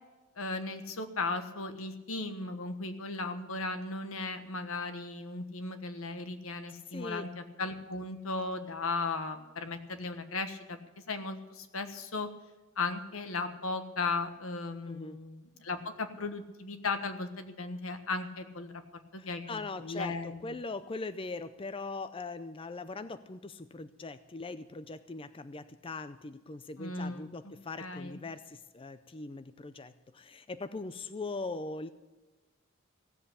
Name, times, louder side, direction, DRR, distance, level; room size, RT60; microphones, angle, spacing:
voice 1, 0.4-10.8 11.1-12.3 12.8-18.7 19.1-20.4 26.8-27.5 27.8-28.2, left 3 dB, 85° left, 7 dB, 1.4 m, -36 dB
voice 2, 6.9-7.3 14.9-15.2 19.2-31.9, left 3 dB, 25° left, 11 dB, 0.5 m, -41 dB
16.5 x 7.9 x 8.4 m, 1.2 s
head